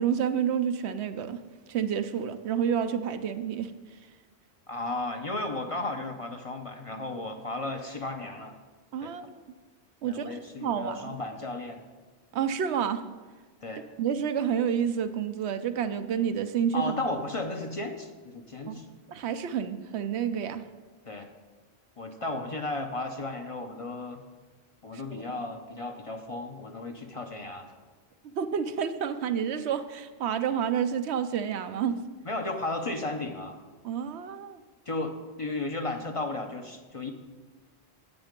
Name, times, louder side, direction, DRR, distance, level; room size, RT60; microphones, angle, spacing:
voice 1, 0.0-1.4 1.7-3.7 8.9-9.4 10.0-11.2 12.3-13.0 14.0-16.9 18.7-18.8 19.1-20.6 24.9-25.2 28.3-32.0 33.8-34.6, right 8 dB, 80° right, 10 dB, 0.9 m, -29 dB
voice 2, 4.7-8.6 9.0-9.1 10.0-11.8 13.6-13.8 16.7-18.9 21.1-21.3 22.0-24.2 24.8-27.7 32.2-33.6 34.9-37.1, left 2 dB, 35° left, 5 dB, 0.7 m, -34 dB
9.6 x 8.1 x 5.2 m, 1.3 s
omnidirectional pair, 1.1 m